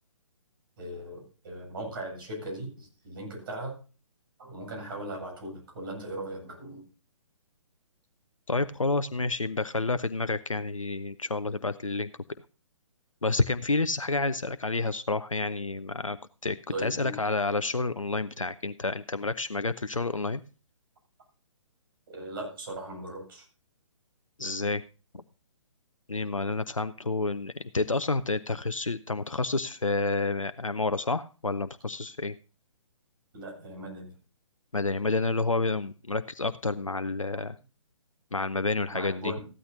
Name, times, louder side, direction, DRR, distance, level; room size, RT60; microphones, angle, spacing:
voice 1, 0.8-3.8 4.4-6.8 16.7-17.2 22.1-23.5 33.3-34.1 37.3-37.5 38.9-39.5, right 1 dB, 45° right, 0 dB, 7.9 m, -38 dB
voice 2, 8.5-12.1 13.2-16.2 16.4-20.4 24.4-24.8 25.1-25.2 26.1-32.4 34.7-37.6 38.3-39.2, left 3 dB, 90° left, 13 dB, 0.6 m, -29 dB
14.5 x 12.5 x 2.7 m, 0.34 s
figure-of-eight pair, 130°, 16 cm